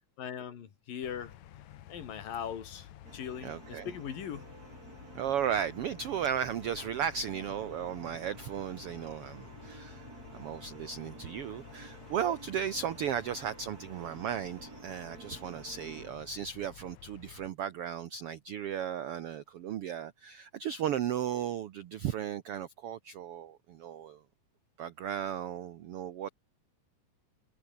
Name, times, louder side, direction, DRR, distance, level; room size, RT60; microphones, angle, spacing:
voice 1, 0.2-1.3 1.9-4.5, left 8 dB, 80° left, 4.3 m, -40 dB
sound 1, 1.0-17.5, left 12 dB, 65° left, 2.4 m, -52 dB
sound 2, 3.0-16.1, right 5 dB, 30° right, 2.2 m, -52 dB
voice 2, 3.4-3.9 5.1-10.1 10.3-24.2 24.8-26.3, right 9 dB, 90° right, 1.2 m, -35 dB
omnidirectional pair, 3.9 m